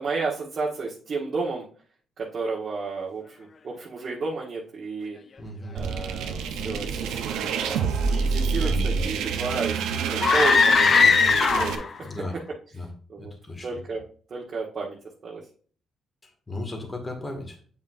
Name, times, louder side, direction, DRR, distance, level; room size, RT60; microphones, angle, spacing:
voice 1, 0.0-1.6 2.2-5.2 5.7-10.9 11.4-11.8 13.1-13.3 13.6-14.0 14.3-15.0 15.2-15.4, right 4 dB, 50° right, -4 dB, 1.3 m, -32 dB
voice 2, 5.4-5.8 8.6-9.1 12.0-12.4 12.7-12.9 13.2-13.7 16.2-17.6, left 2 dB, 25° left, 3 dB, 2.0 m, -35 dB
sound 1, 5.8-11.8, right 5 dB, 90° right, 0.8 m, -27 dB
sound 2, 10.2-12.0, left 5 dB, 45° left, 0.6 m, -19 dB
7.9 x 5.4 x 2.6 m, 0.43 s
cardioid pair, 90°, 0 cm